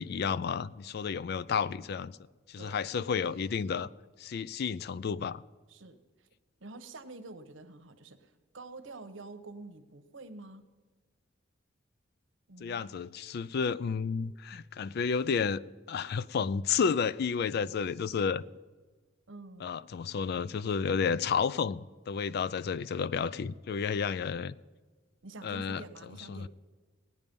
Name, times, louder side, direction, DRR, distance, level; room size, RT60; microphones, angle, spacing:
voice 1, 0.0-2.2 2.5-3.9 4.2-5.4 12.6-15.6 15.9-18.4 19.6-24.5 25.4-25.8 26.3-26.5, left 6 dB, 55° left, 0.3 m, -31 dB
voice 2, 2.6-3.0 5.7-6.3 6.6-10.7 12.5-12.9 19.3-19.8 25.2-26.5, right 2 dB, 85° right, 1.0 m, -48 dB
16.5 x 9.5 x 5.3 m
head